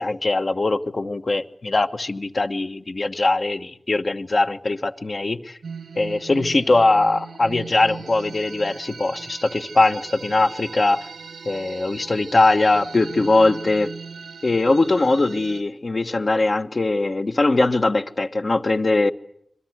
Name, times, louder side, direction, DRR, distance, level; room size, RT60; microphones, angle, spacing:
voice 1, 0.0-5.6 6.0-11.1 11.4-13.9 14.4-19.1, left 2 dB, 35° left, 1.2 m, -21 dB
sound 1, 5.6-15.6, right 5 dB, 75° right, 1.5 m, -39 dB
27.5 x 22.5 x 8.0 m
wide cardioid pair, 100°, 0 cm